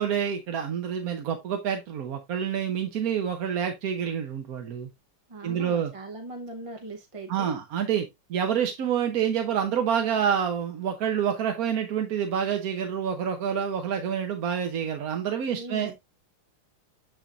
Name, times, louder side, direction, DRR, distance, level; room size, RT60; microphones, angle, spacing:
voice 1, 0.0-4.9 5.4-5.9 7.3-15.9, right 8 dB, 60° right, 1.1 m, -27 dB
voice 2, 5.3-7.6 15.5-15.9, right 2 dB, 30° right, 0.6 m, -39 dB
7.2 x 7.2 x 2.5 m
omnidirectional pair, 2.3 m